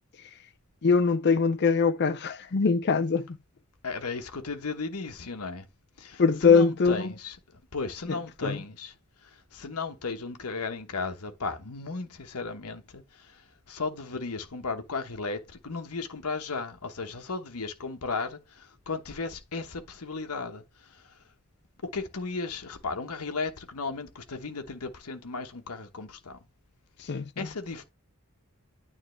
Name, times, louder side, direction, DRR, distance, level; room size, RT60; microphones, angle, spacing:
voice 1, 0.8-3.3 6.2-7.1 8.1-8.6 27.0-27.5, left 5 dB, 50° left, 0.5 m, -23 dB
voice 2, 3.8-5.6 6.0-7.3 7.7-8.9 9.2-13.4 13.7-20.6 20.9-21.0 21.8-26.4 27.1-27.8, left 4 dB, 90° left, 1.1 m, -35 dB
9.2 x 3.6 x 3.1 m
head